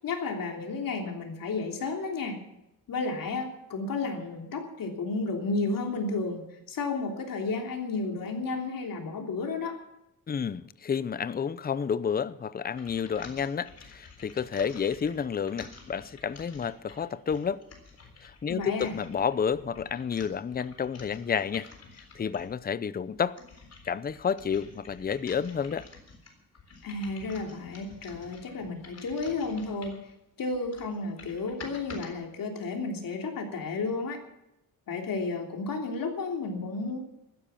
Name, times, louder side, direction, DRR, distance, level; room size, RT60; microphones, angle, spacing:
voice 1, 0.0-2.4 2.9-6.4 6.7-9.8 18.5-19.0 26.8-30.0 30.4-34.2 34.9-37.1, left 3 dB, 65° left, 3.2 m, -32 dB
voice 2, 10.3-17.6 18.2-21.7 22.2-23.4 23.9-25.9, left 7 dB, 25° left, 0.6 m, -30 dB
sound 1, 12.7-22.6 23.1-30.1 30.5-32.1, left 4 dB, 45° left, 3.8 m, -50 dB
15.5 x 12.5 x 7.1 m
wide cardioid pair, 140°, 36 cm